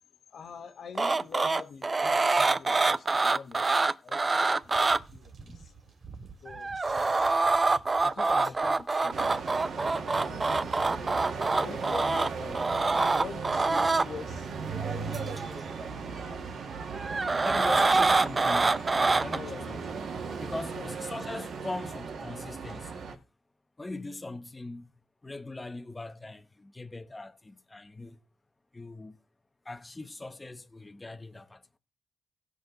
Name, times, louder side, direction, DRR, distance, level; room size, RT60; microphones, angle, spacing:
voice 1, 0.3-3.7 4.0-4.7 5.1-5.7 6.4-9.2 10.2-12.6 12.9-14.5 14.9-15.4 17.5-18.0 19.3-19.7 20.7-21.0, left 5 dB, 75° left, 1.3 m, -44 dB
sound 1, 1.0-5.0 6.5-14.1 15.1-15.4 16.9-19.4, right 3 dB, 30° right, 0.6 m, -25 dB
sound 2, 4.6-9.1, right 4 dB, 65° right, 2.5 m, -51 dB
sound 3, 9.1-23.2, right 5 dB, 85° right, 2.1 m, -37 dB
voice 2, 17.5-18.9 19.2-23.1 23.8-24.9 25.2-28.2 28.7-29.2 29.6-31.6, left 2 dB, 20° left, 1.0 m, -41 dB
18.0 x 6.4 x 3.9 m
cardioid pair, 90°, 0 cm